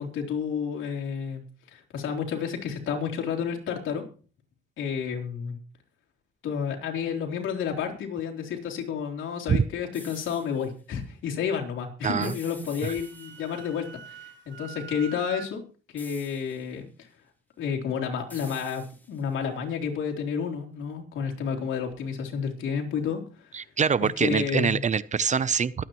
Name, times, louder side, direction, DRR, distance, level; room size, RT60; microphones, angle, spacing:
voice 1, 0.0-1.4 1.7-4.0 4.8-5.6 6.4-15.6 15.9-17.1 17.6-23.6 24.2-24.8, left 7 dB, 80° left, 0 dB, 3.5 m, -31 dB
sound 1, 9.9-10.7 12.2-13.6 16.0-16.8 18.3-19.3, left 1 dB, 10° left, 2.6 m, -49 dB
voice 2, 12.0-12.3 23.5-25.8, right 6 dB, 35° right, 18 dB, 0.7 m, -24 dB
Wind instrument woodwind instrument, 12.6-15.5, right 8 dB, 70° right, 1.1 m, -44 dB
23.0 x 9.0 x 3.1 m, 0.37 s
cardioid pair, 90°, 20 cm